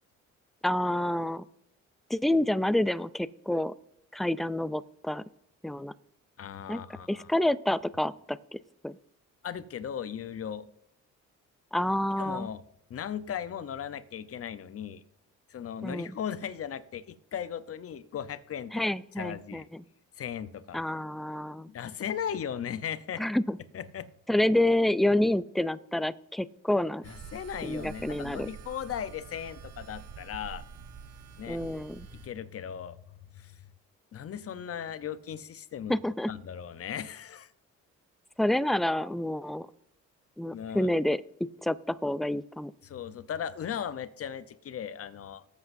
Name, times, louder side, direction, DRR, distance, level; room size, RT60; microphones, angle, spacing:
voice 1, 0.6-1.4 2.1-3.7 4.1-5.2 5.6-5.9 6.7-6.8 7.1-8.6 8.8-8.9 11.7-12.5 15.8-16.1 18.7-19.6 20.7-21.7 23.2-23.6 24.3-27.0 27.6-28.5 31.5-32.1 35.9-36.3 38.4-39.7 40.4-41.2 41.6-42.7, left 1 dB, ahead, 16 dB, 0.3 m, -28 dB
voice 2, 6.4-7.3 9.4-10.7 12.2-12.6 12.9-15.0 15.5-18.8 19.2-19.7 20.1-20.8 21.7-23.2 23.7-24.1 27.0-30.6 31.4-31.6 32.1-33.0 33.3-33.6 34.1-36.0 36.3-37.5 40.5-40.9 42.8-45.5, left 8 dB, 50° left, 13 dB, 0.8 m, -37 dB
sound 1, 27.0-32.3, right 6 dB, 55° right, 1.1 m, -46 dB
18.5 x 8.2 x 2.6 m, 0.82 s
cardioid pair, 90°, 30 cm